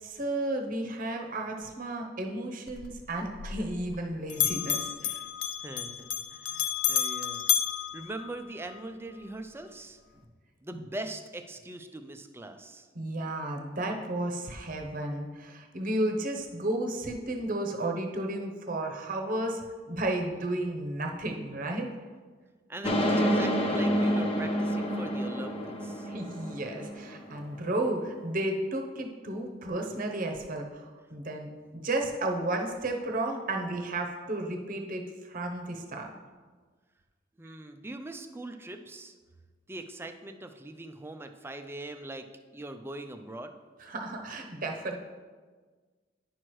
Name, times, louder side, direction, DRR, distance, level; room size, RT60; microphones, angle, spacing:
voice 1, 0.0-5.2 10.7-10.9 12.9-19.6 19.9-21.9 26.1-30.8 31.1-36.1 37.4-37.6 43.8-45.0, right 1 dB, 45° right, 3 dB, 0.8 m, -33 dB
Bell, 2.7-4.0 4.3-8.8, left 11 dB, 75° left, 0.4 m, -31 dB
voice 2, 5.6-7.4 7.9-10.0 10.6-12.9 22.7-26.1 37.4-39.1 39.7-42.2 42.5-43.5, right 2 dB, 15° right, 6 dB, 0.4 m, -41 dB
sound 1, 22.8-27.3 27.7-27.8 28.1-28.2, equal, 30° left, 0.8 m, -28 dB
10.0 x 6.1 x 3.1 m, 1.4 s
head